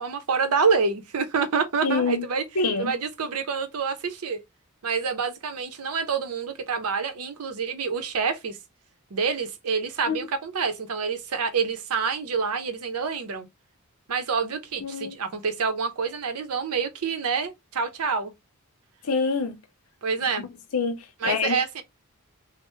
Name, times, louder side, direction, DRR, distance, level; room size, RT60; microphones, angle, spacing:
voice 1, 0.0-2.4 2.8-4.4 4.8-8.6 9.1-13.5 14.1-18.3 20.0-20.5 21.2-21.8, right 5 dB, 90° right, 0.7 m, -27 dB
voice 2, 1.8-2.2 2.6-2.9 10.1-10.2 14.8-15.2 19.0-19.6 20.7-21.6, left 4 dB, 85° left, 0.7 m, -26 dB
3.2 x 2.1 x 3.1 m
head